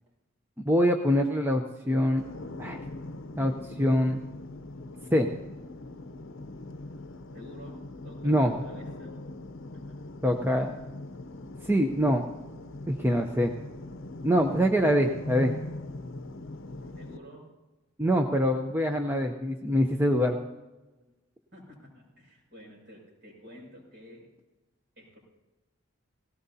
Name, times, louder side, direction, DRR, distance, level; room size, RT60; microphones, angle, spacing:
voice 1, 0.7-2.2 2.6-2.8 3.4-4.2 5.1-5.3 8.2-8.6 10.2-10.7 11.6-12.3 12.9-13.5 14.2-15.5 18.0-20.4, equal, 10° right, 3 dB, 0.6 m, -24 dB
sound 1, 2.2-17.2, left 2 dB, 70° left, 0.7 m, -41 dB
voice 2, 7.3-9.1 9.7-10.1 16.8-17.5 21.5-24.3 25.0-25.2, equal, 55° right, -2 dB, 6.3 m, -50 dB
18.0 x 17.5 x 2.8 m, 1.1 s
head